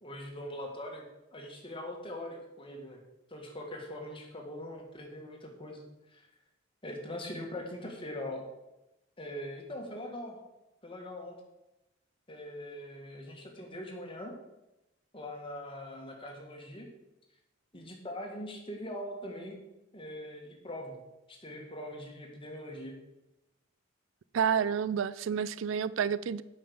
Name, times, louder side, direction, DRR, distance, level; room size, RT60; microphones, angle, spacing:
voice 1, 0.0-3.0 3.3-6.2 6.8-8.5 9.2-10.5 10.8-11.4 12.3-14.3 15.1-16.9 17.7-19.6 19.9-21.0 21.3-23.0, left 1 dB, 25° left, 2 dB, 1.7 m, -42 dB
voice 2, 24.3-26.4, right 7 dB, 70° right, 17 dB, 0.4 m, -29 dB
8.5 x 5.7 x 6.9 m, 0.97 s
head